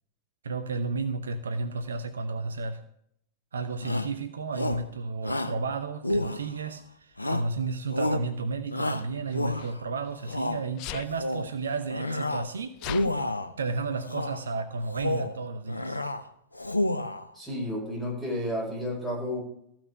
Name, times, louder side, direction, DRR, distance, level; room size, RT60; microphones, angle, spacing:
voice 1, 0.4-2.8 3.5-12.7 13.6-16.0, right 4 dB, 70° right, 9 dB, 0.7 m, -32 dB
Shout, 3.8-4.2 4.5-4.9 5.2-5.6 6.0-6.7 7.2-7.6 7.9-8.3 8.7-9.8 10.2-10.6 11.0-11.5 11.9-12.5 12.8-13.5 14.0-14.4 14.8-15.4 15.7-16.2 16.5-17.3, left 1 dB, 85° left, 0.7 m, -30 dB
Sneeze, 5.3-5.4 6.5-6.9 8.9-10.4 10.8-11.1 11.9-12.0 12.2-13.1, left 13 dB, 40° left, 0.6 m, -40 dB
voice 2, 17.3-19.4, left 1 dB, 5° right, -3 dB, 5.7 m, -31 dB
14.5 x 5.9 x 7.2 m, 0.71 s
figure-of-eight pair, 90°, 0 cm